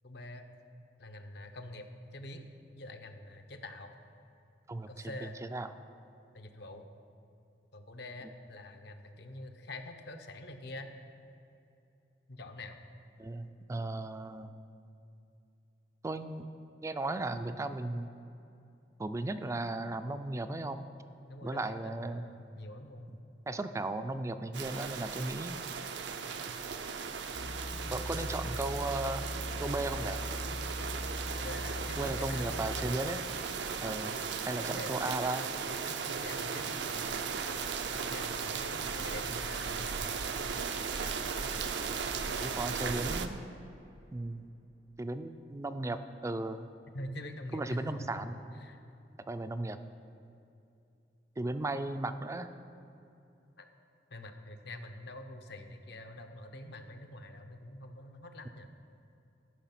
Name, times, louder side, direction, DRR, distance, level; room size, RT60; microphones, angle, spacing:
voice 1, 0.0-0.5 1.0-2.5 2.8-3.9 4.9-5.4 6.3-6.8 7.7-10.9 12.3-12.8 21.3-23.1 27.8-28.3 31.3-32.9 33.8-33.9 34.7-35.1 35.8-37.1 37.9-40.4 46.9-48.2 48.5-48.8 53.6-53.7 54.1-58.7, left 1 dB, 65° left, 6 dB, 0.8 m, -45 dB
voice 2, 4.7-5.1 5.5-5.7 13.2-14.5 16.0-16.5 16.8-18.1 19.0-20.9 21.4-22.3 23.5-25.6 27.9-29.3 29.6-30.2 32.0-33.2 33.8-34.2 34.5-35.5 42.4-43.4 44.1-44.5 45.0-46.7 47.5-48.3 49.3-49.8 51.4-52.5, right 2 dB, 15° right, 10 dB, 0.3 m, -36 dB
sound 1, 24.5-43.3, right 6 dB, 75° right, 0.5 m, -36 dB
sound 2, 27.3-32.9, left 1 dB, 30° left, 0.6 m, -40 dB
13.0 x 5.4 x 5.9 m, 2.7 s
head